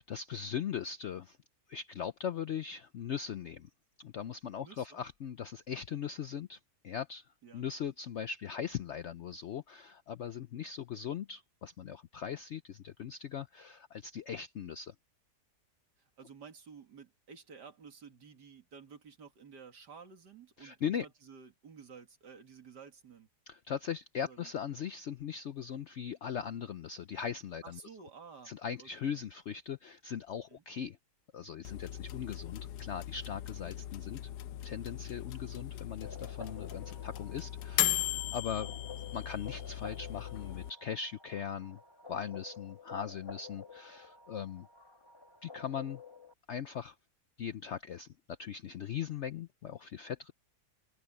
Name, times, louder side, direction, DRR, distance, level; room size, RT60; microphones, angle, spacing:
voice 1, 0.0-1.4 1.7-3.7 4.0-6.6 6.8-7.3 7.5-14.9 20.6-21.1 23.5-27.8 28.4-31.0 31.3-34.2 34.6-41.8 42.1-44.7 45.4-46.0 46.5-47.0 47.4-50.3, left 8 dB, 65° left, 0.7 m, -39 dB
voice 2, 4.6-5.0 7.4-7.7 16.2-23.3 24.2-24.5 27.6-29.2 30.5-30.6 38.6-38.7, right 5 dB, 90° right, 2.8 m, -53 dB
sound 1, 31.6-40.7, left 14 dB, 80° left, 1.2 m, -38 dB
sound 2, 36.0-46.3, left 4 dB, 15° left, 1.4 m, -51 dB
omnidirectional pair, 1.8 m